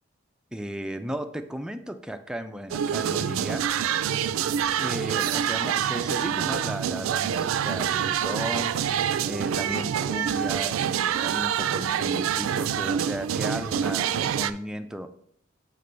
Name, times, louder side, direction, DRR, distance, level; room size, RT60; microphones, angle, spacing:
voice 1, 0.5-3.7 4.8-8.7 9.2-15.1, equal, 5° right, 7 dB, 0.3 m, -35 dB
sound 1, 2.7-14.5, right 9 dB, 90° right, 0.3 m, -26 dB
sound 2, 4.7-10.7, right 1 dB, 40° right, 0.9 m, -51 dB
6.6 x 3.3 x 5.2 m, 0.67 s
head